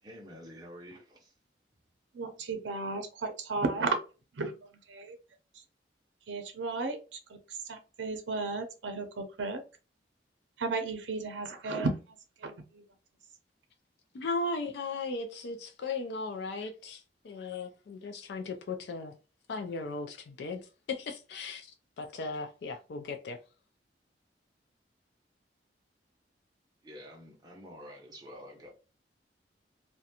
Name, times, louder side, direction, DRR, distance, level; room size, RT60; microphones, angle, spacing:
voice 1, 0.0-1.3 26.8-28.7, equal, 20° right, 0.5 m, -48 dB
voice 2, 2.1-4.0 4.3-4.5 4.9-5.2 6.3-7.2 7.5-9.6 10.6-12.0 12.4-12.8, right 3 dB, 90° right, 0.5 m, -34 dB
voice 3, 14.1-19.1 19.5-23.4, left 3 dB, 65° left, 0.3 m, -37 dB
2.4 x 2.1 x 2.7 m
head